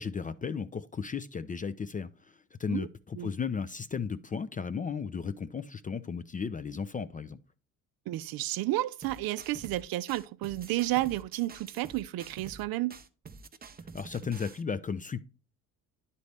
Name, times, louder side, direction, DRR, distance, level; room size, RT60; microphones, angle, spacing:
voice 1, 0.0-7.4 13.9-15.2, left 6 dB, 20° left, 0.4 m, -35 dB
voice 2, 8.1-13.0, right 16 dB, 55° right, 0.5 m, -31 dB
sound 1, 9.0-9.8 10.1-12.6 12.9-14.6, right 4 dB, 20° right, 0.7 m, -48 dB
10.5 x 4.2 x 3.3 m
hypercardioid pair, 60°, 43 cm